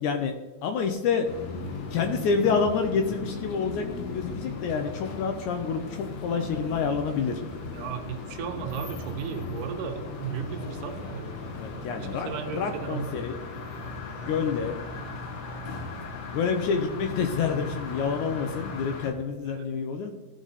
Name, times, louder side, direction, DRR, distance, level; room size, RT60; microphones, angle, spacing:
voice 1, 0.0-1.3 1.9-7.4 11.5-13.4 14.2-14.8 16.3-20.1, left 5 dB, 75° left, 6 dB, 1.9 m, -28 dB
sound 1, 1.2-19.1, left 3 dB, 60° left, 1.9 m, -37 dB
voice 2, 7.7-11.4 12.0-13.1 19.4-19.7, right 8 dB, 75° right, 5 dB, 2.3 m, -35 dB
14.0 x 4.9 x 4.0 m, 1.2 s
omnidirectional pair, 3.9 m